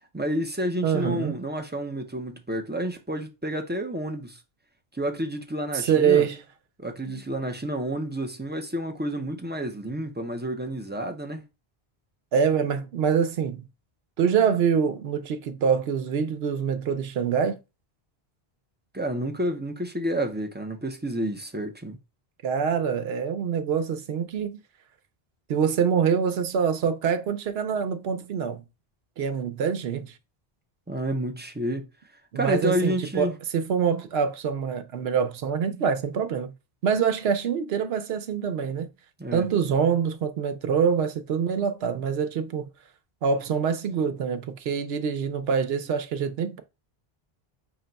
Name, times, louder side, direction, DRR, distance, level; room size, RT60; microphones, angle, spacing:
voice 1, 0.1-4.4 4.9-6.3 6.8-11.4 18.9-22.0 30.9-31.9 32.4-33.3 39.2-39.5, right 1 dB, 15° right, 0.5 m, -29 dB
voice 2, 0.8-1.4 5.7-6.4 7.1-7.2 12.3-13.7 14.2-17.6 22.4-24.6 25.5-28.6 29.2-30.1 32.3-36.5 36.8-38.9 39.3-42.7 43.2-46.6, right 7 dB, 80° right, 0.9 m, -25 dB
5.7 x 2.2 x 3.9 m
omnidirectional pair, 1.0 m